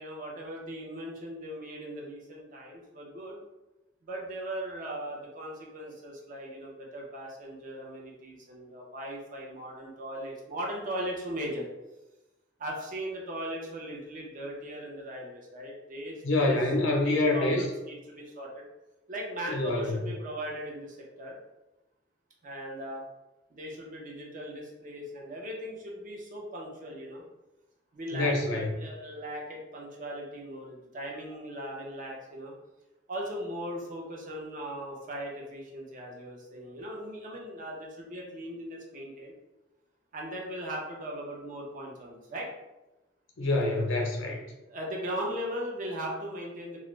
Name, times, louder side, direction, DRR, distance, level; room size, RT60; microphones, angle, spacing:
voice 1, 0.0-3.4 4.0-11.6 12.6-16.6 17.0-18.6 19.1-21.4 22.4-23.0 23.5-27.3 27.9-32.5 33.1-39.3 40.1-42.5 44.6-46.8, equal, 45° right, -1 dB, 0.6 m, -38 dB
voice 2, 16.2-17.7 19.5-20.0 28.1-28.7 43.4-44.4, left 2 dB, 85° left, 0 dB, 0.6 m, -26 dB
2.3 x 2.0 x 3.0 m, 1.0 s
head